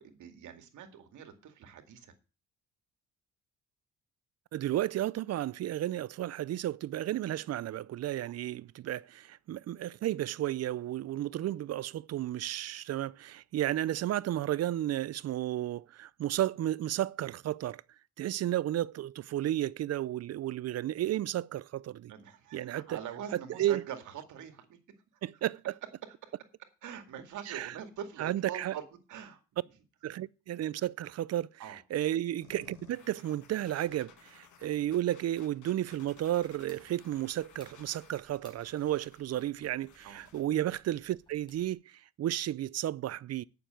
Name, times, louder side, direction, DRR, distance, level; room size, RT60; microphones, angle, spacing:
voice 1, 0.0-2.1 22.1-24.8 26.2-26.3 26.8-28.8 29.1-29.4 31.6-31.8 40.0-40.3, right 8 dB, 75° right, 2.2 m, -44 dB
voice 2, 4.5-17.8 18.2-22.1 22.5-23.0 23.6-23.8 25.2-25.6 27.5-27.7 28.2-28.7 30.0-31.5 31.9-43.4, right 13 dB, 55° right, 0.5 m, -33 dB
sound 1, 32.4-40.4, left 7 dB, 75° left, 2.3 m, -58 dB
sound 2, 36.7-41.7, left 1 dB, 15° left, 4.8 m, -65 dB
9.1 x 6.8 x 7.6 m
cardioid pair, 90°, 30 cm